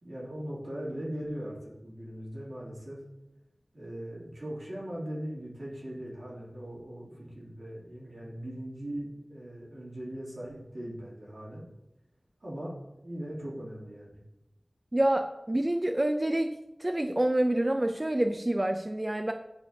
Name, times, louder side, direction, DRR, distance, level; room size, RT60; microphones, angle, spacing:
voice 1, 0.0-3.0 3.7-11.7 12.4-12.7 13.0-14.2, right 1 dB, 80° right, -7 dB, 2.5 m, -39 dB
voice 2, 14.9-16.5 16.8-19.3, right 1 dB, 30° right, 6 dB, 0.3 m, -27 dB
10.5 x 4.4 x 2.7 m, 0.92 s
wide cardioid pair, 60°, 0 cm